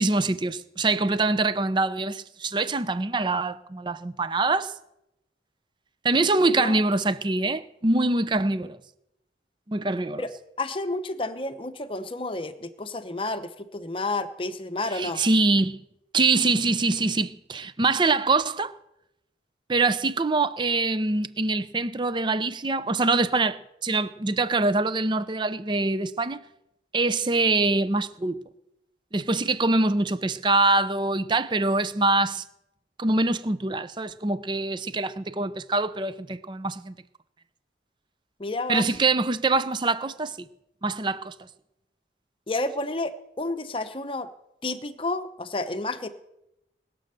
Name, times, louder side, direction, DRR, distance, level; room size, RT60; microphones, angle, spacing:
voice 1, 0.0-4.7 6.0-8.8 9.7-10.2 14.9-15.8 16.1-18.7 19.7-26.4 26.9-28.4 29.1-32.4 33.0-37.0 38.7-40.5 40.8-41.3, right 3 dB, 25° right, 0.5 m, -24 dB
voice 2, 6.4-6.8 10.2-10.3 10.6-15.2 38.4-38.9 42.5-44.3 44.6-46.1, left 2 dB, 30° left, 0.8 m, -30 dB
20.0 x 7.7 x 6.7 m
head